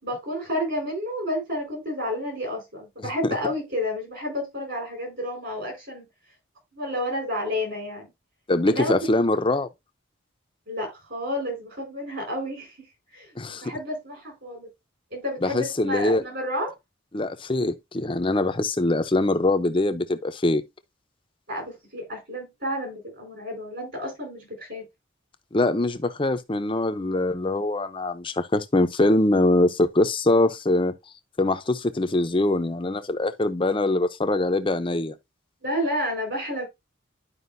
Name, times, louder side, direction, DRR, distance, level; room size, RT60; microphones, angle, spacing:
voice 1, 0.0-6.0 6.7-8.1 8.7-9.0 10.7-12.9 13.1-14.7 15.1-16.7 21.5-24.8 35.6-36.6, left 1 dB, 55° right, 4.5 m, -30 dB
voice 2, 8.5-9.7 13.4-13.7 15.4-16.2 17.1-20.6 25.5-31.0 31.4-35.1, left 2 dB, 25° left, 0.6 m, -23 dB
11.5 x 5.0 x 2.6 m
head